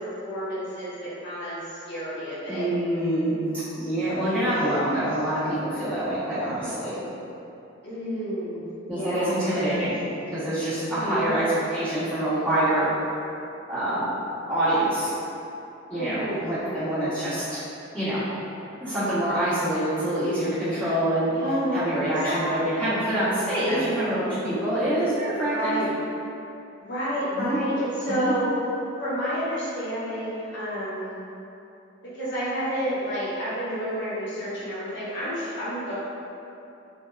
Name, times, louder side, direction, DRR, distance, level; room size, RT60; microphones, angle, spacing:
voice 1, 0.0-2.7 7.8-8.6 8.9-9.7 10.9-11.4 15.9-17.3 21.3-21.8 22.2-22.7 23.7-24.0 25.5-25.9 26.8-28.5 29.0-31.1 32.0-35.9, equal, 55° left, -10 dB, 0.8 m, -30 dB
voice 2, 2.5-7.0 8.9-9.9 10.3-11.4 11.7-12.9 13.7-14.1 14.5-15.1 15.9-17.6 17.9-18.2 18.8-21.3 21.7-25.8 27.3-27.6 28.1-28.3, right 1 dB, 5° left, -15 dB, 0.9 m, -26 dB
3.3 x 2.7 x 2.3 m, 2.8 s
head